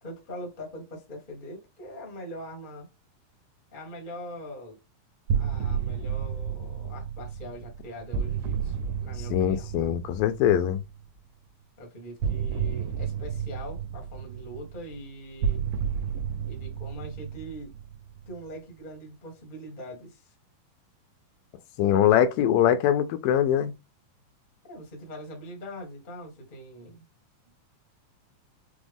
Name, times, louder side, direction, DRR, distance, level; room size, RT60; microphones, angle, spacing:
voice 1, 0.0-2.9 3.7-4.8 5.3-9.7 11.8-15.6 16.5-17.7 18.3-20.3 21.8-22.4 24.6-27.0, equal, 45° left, 0.6 m, -42 dB
sound 1, 5.3-11.0 12.2-18.5, right 7 dB, 90° right, 2.5 m, -32 dB
voice 2, 9.3-10.8 21.8-23.7, left 10 dB, 80° left, 2.2 m, -22 dB
6.0 x 2.0 x 3.4 m
omnidirectional pair, 4.0 m